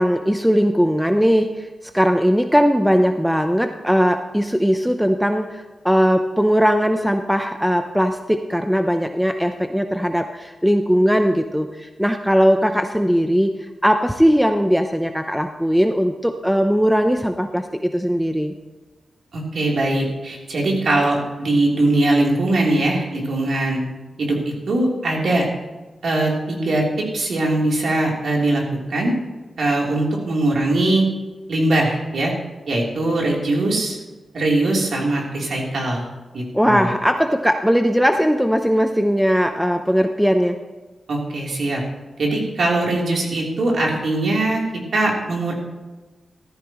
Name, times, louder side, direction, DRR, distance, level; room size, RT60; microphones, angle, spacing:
voice 1, 0.0-1.7 1.9-18.5 36.5-40.6, equal, ahead, 6 dB, 0.7 m, -19 dB
voice 2, 19.3-23.8 24.2-25.5 26.0-28.6 28.9-29.1 29.6-31.0 31.5-32.3 32.7-34.0 34.3-36.0 36.3-36.9 41.1-41.8 42.2-44.6 44.9-45.5, right 2 dB, 70° right, -2 dB, 3.4 m, -21 dB
15.0 x 13.5 x 3.1 m, 1.2 s
wide cardioid pair, 95°, 0 cm